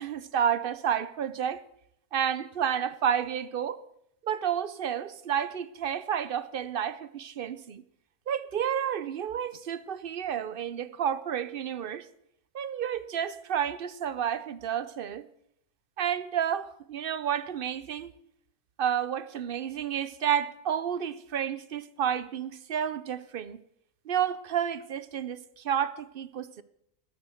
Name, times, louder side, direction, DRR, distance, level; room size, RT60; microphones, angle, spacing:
voice 1, 0.0-1.6 2.1-3.8 4.2-7.8 8.3-12.1 12.5-15.3 16.0-18.1 18.8-23.6 24.1-26.6, right 9 dB, 55° right, 0.6 m, -30 dB
14.0 x 11.5 x 6.4 m
omnidirectional pair, 1.5 m